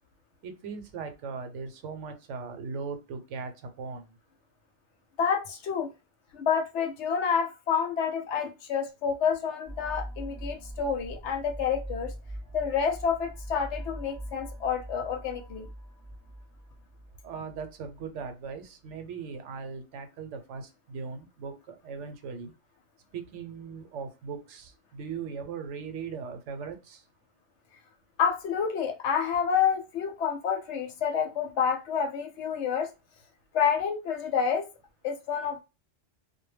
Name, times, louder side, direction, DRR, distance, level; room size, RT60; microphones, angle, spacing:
voice 1, 0.4-4.1 17.2-22.5 23.1-27.0, right 5 dB, 80° right, 0.9 m, -39 dB
voice 2, 5.2-5.9 6.3-12.1 12.5-15.7 28.2-32.9 33.5-34.6 35.0-35.6, left 7 dB, 70° left, 0.9 m, -28 dB
sound 1, 9.7-18.3, right 1 dB, 25° left, 0.8 m, -42 dB
2.2 x 2.1 x 3.1 m
omnidirectional pair, 1.3 m